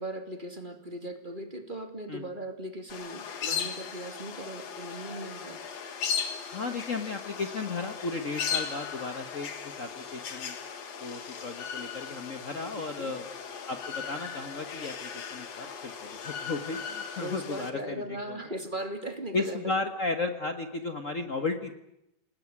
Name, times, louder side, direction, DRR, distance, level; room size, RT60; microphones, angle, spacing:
voice 1, 0.0-5.6 13.0-13.1 17.2-19.8, right 1 dB, 15° right, 6 dB, 2.4 m, -38 dB
sound 1, 2.9-17.7, left 7 dB, 55° left, 3.0 m, -37 dB
voice 2, 6.5-10.6 11.0-13.3 13.7-18.4 19.3-21.8, left 3 dB, 75° left, 7 dB, 0.7 m, -34 dB
29.0 x 19.5 x 9.7 m, 0.86 s
omnidirectional pair, 3.8 m